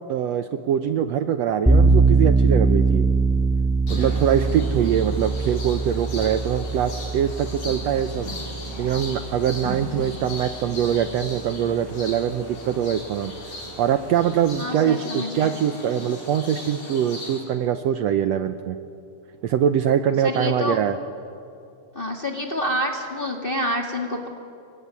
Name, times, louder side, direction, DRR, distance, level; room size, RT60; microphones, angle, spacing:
voice 1, 0.1-3.1 3.9-8.3 8.8-13.3 13.8-18.8 19.4-21.0, right 9 dB, 70° right, 9 dB, 1.8 m, -23 dB
sound 1, 1.7-10.5, right 4 dB, 5° right, 1.0 m, -22 dB
sound 2, 3.9-17.4, left 1 dB, 90° left, 7.2 m, -37 dB
voice 2, 14.6-15.5 20.2-20.8 21.9-24.3, left 1 dB, 20° left, 2 dB, 1.8 m, -27 dB
25.5 x 23.5 x 9.6 m, 2.5 s
omnidirectional pair, 3.5 m